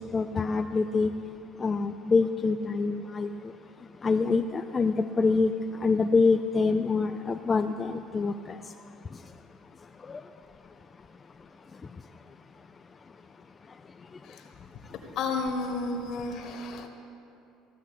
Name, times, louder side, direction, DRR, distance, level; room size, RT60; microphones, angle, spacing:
voice 1, 0.1-1.1 1.6-3.5 4.0-5.5 5.8-8.6, left 4 dB, 25° left, 6 dB, 0.4 m, -25 dB
voice 2, 15.1-16.9, left 3 dB, 60° left, 4 dB, 1.5 m, -32 dB
15.5 x 6.1 x 7.8 m, 2.8 s
supercardioid pair, 105°, 0 cm